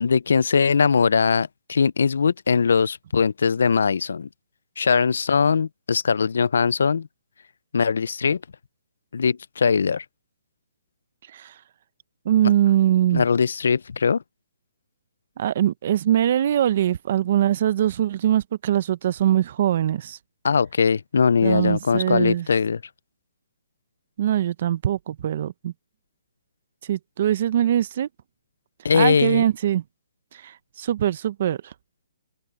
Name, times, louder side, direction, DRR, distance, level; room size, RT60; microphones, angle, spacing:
voice 1, 0.0-4.3 4.8-7.1 7.7-8.4 9.1-10.0 12.4-12.5 13.1-14.2 20.4-22.8 28.8-29.4, left 5 dB, 75° left, 0.4 m, -21 dB
voice 2, 12.3-13.2 15.4-20.2 21.4-22.4 24.2-25.7 26.9-28.1 28.9-29.8 30.4-31.7, right 11 dB, 45° right, 0.7 m, -22 dB
hypercardioid pair, 165°, 0 cm